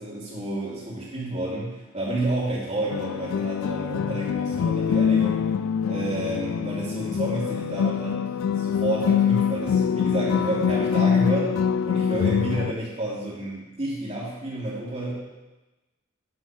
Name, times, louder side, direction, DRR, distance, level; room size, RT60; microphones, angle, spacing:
voice 1, 0.0-5.5 5.8-11.6 11.8-15.1, right 1 dB, 35° right, -7 dB, 3.0 m, -30 dB
sound 1, 2.9-12.7, left 7 dB, 90° left, 0.3 m, -24 dB
11.0 x 4.1 x 5.7 m, 1.1 s
head